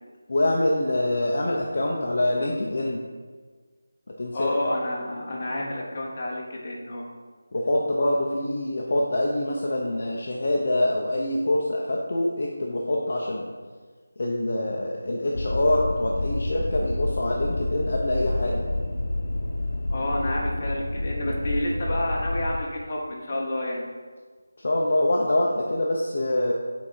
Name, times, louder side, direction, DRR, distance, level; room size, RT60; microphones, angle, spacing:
voice 1, 0.3-3.0 4.2-4.5 7.5-13.5 14.2-18.6 24.6-26.5, left 1 dB, 45° left, -2 dB, 0.6 m, -25 dB
voice 2, 4.3-7.1 19.9-23.8, left 1 dB, 30° left, -3 dB, 1.0 m, -29 dB
sound 1, 15.3-22.6, left 1 dB, 85° left, 0.7 m, -29 dB
6.0 x 3.9 x 4.4 m, 1.5 s
figure-of-eight pair, 175°, 0 cm